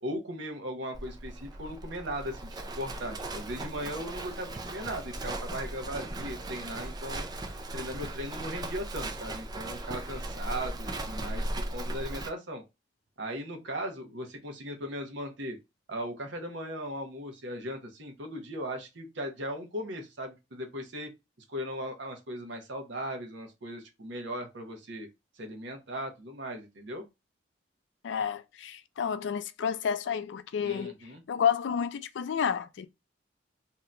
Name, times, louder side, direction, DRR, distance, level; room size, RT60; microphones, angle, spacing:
voice 1, 0.0-2.5 2.8-12.6 13.2-15.6 15.9-21.1 21.5-25.1 25.4-27.0 30.6-31.2, equal, 70° right, 0.8 m, -38 dB
Livestock farm animals working animals, 0.9-12.3, right 1 dB, 20° right, 0.3 m, -37 dB
voice 2, 28.0-31.0 31.3-32.9, left 7 dB, 70° left, 0.3 m, -30 dB
2.8 x 2.2 x 3.7 m
head